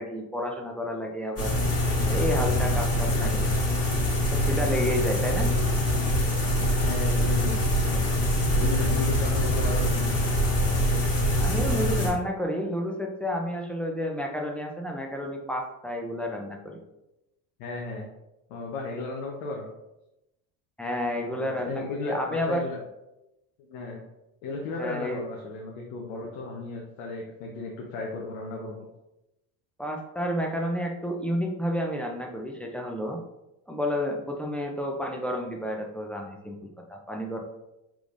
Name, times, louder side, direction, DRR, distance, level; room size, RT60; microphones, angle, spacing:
voice 1, 0.0-1.5 2.1-3.5 4.3-5.5 11.4-16.8 20.8-22.7 24.8-25.2 29.8-33.2 33.7-37.4, equal, 5° left, 1 dB, 0.5 m, -30 dB
sound 1, 1.4-12.1, left 1 dB, 35° left, 1.4 m, -24 dB
voice 2, 3.1-3.4 6.8-7.6 7.9-10.1 17.6-18.1 18.5-19.7 21.2-22.8 23.6-24.0 24.4-28.9, left 3 dB, 80° left, -1 dB, 0.9 m, -35 dB
4.8 x 3.5 x 2.5 m, 0.92 s
supercardioid pair, 100°, 41 cm